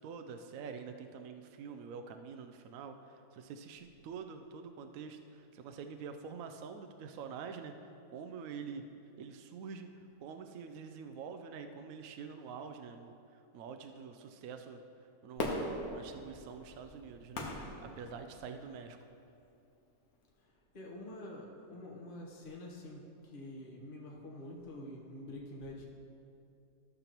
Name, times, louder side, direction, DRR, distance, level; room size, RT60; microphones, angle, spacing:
voice 1, 0.0-8.8 9.2-9.9 10.2-14.8 15.2-17.5 17.8-19.0, right 6 dB, 70° right, 6 dB, 0.9 m, -46 dB
Fireworks, 15.4-18.7 19.3-19.4, left 1 dB, 75° left, 1.5 m, -40 dB
voice 2, 20.7-25.9, left 1 dB, 40° left, -2 dB, 1.3 m, -47 dB
14.0 x 6.8 x 3.0 m, 2.6 s
omnidirectional pair, 1.6 m